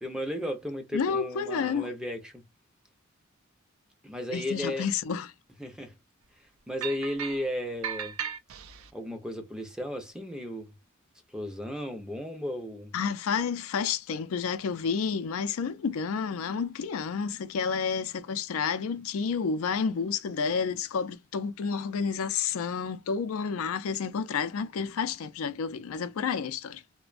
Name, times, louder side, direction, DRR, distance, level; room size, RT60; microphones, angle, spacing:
voice 1, 0.0-2.4 4.0-4.9 5.6-6.0 6.7-8.2 8.9-10.7 11.3-12.9, left 1 dB, 5° right, 0.5 m, -34 dB
voice 2, 0.9-1.9 4.3-5.3 12.9-26.8, left 6 dB, 85° left, 0.4 m, -30 dB
sound 1, 6.8-7.5 7.8-8.9, right 8 dB, 80° right, 0.4 m, -36 dB
2.5 x 2.1 x 2.3 m
head